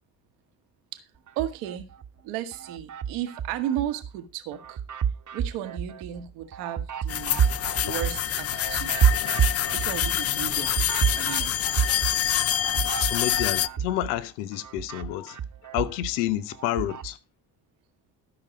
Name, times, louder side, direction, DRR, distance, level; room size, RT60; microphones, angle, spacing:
sound 1, 1.3-2.1 2.5-4.1 4.5-14.2 14.5-17.1, right 8 dB, 45° right, 1.1 m, -29 dB
voice 1, 1.3-1.8 2.2-4.8 5.3-7.4 7.8-8.9 9.7-11.5, right 11 dB, 85° right, 1.3 m, -34 dB
sound 2, 7.1-13.7, left 11 dB, 35° left, 0.4 m, -26 dB
voice 2, 13.0-15.4 15.7-17.2, left 14 dB, 85° left, 0.8 m, -29 dB
13.0 x 5.9 x 5.1 m
hypercardioid pair, 55°, 43 cm